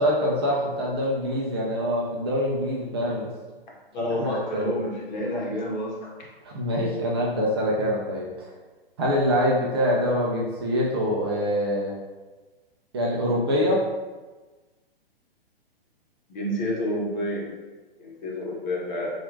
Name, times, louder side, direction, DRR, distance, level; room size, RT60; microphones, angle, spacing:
voice 1, 0.0-3.3 4.2-4.7 6.4-8.5 9.0-11.9 12.9-13.8, equal, 25° right, -4 dB, 0.4 m, -25 dB
voice 2, 3.9-6.1 16.3-17.5 18.0-19.1, equal, 50° left, -3 dB, 1.0 m, -29 dB
4.1 x 2.4 x 2.6 m, 1.2 s
figure-of-eight pair, 120°, 30 cm